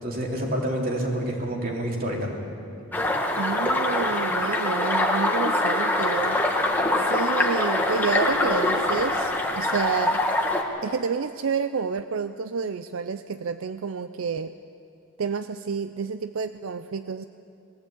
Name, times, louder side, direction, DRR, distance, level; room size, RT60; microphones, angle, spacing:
voice 1, 0.0-2.3, right 1 dB, 45° right, -1 dB, 3.2 m, -28 dB
sound 1, 2.9-10.6, left 1 dB, 10° left, 1.4 m, -24 dB
voice 2, 3.4-6.4 7.0-10.2 10.8-14.5 15.2-17.3, right 5 dB, 80° right, 11 dB, 0.5 m, -29 dB
20.5 x 15.0 x 8.5 m, 2.5 s
head